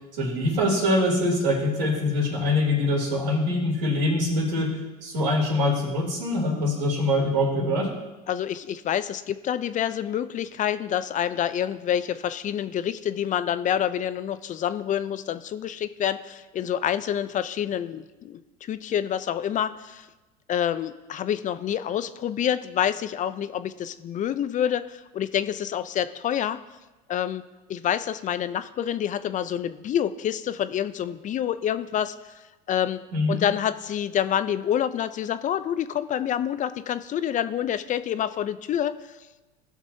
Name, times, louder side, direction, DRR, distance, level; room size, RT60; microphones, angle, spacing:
voice 1, 0.1-4.7 5.0-7.9 33.1-33.4, left 1 dB, 85° right, -2 dB, 3.1 m, -24 dB
voice 2, 8.3-20.1 20.5-26.6 27.1-27.4 27.7-32.1 32.7-33.0 33.3-38.9, left 10 dB, 35° left, 13 dB, 0.5 m, -27 dB
16.5 x 6.0 x 2.8 m, 1.1 s
hypercardioid pair, 90°, 21 cm